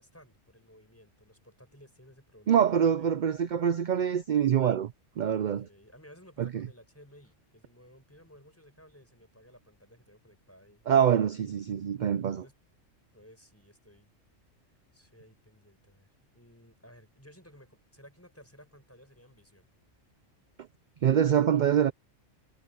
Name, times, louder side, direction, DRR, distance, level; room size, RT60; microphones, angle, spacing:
voice 1, 0.0-3.1 5.4-10.8 12.3-12.5 13.1-14.1 14.9-19.7, equal, 10° left, 6.5 m, -56 dB
voice 2, 2.5-4.9 5.2-5.7 6.4-6.7 10.9-12.4 21.0-21.9, right 9 dB, 60° right, 0.5 m, -25 dB
omnidirectional pair, 1.3 m